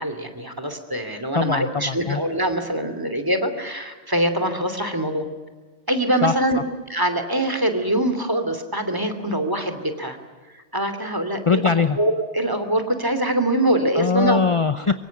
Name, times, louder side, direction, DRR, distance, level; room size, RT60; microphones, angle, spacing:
voice 1, 0.0-5.2 5.9-6.6 6.9-10.2 10.7-11.6 12.0-14.4, right 1 dB, 15° right, 8 dB, 2.9 m, -23 dB
voice 2, 1.3-2.2 6.2-6.6 11.5-12.0 13.9-14.9, left 5 dB, 30° left, 11 dB, 0.8 m, -21 dB
24.5 x 23.5 x 9.5 m, 1.4 s
omnidirectional pair, 1.2 m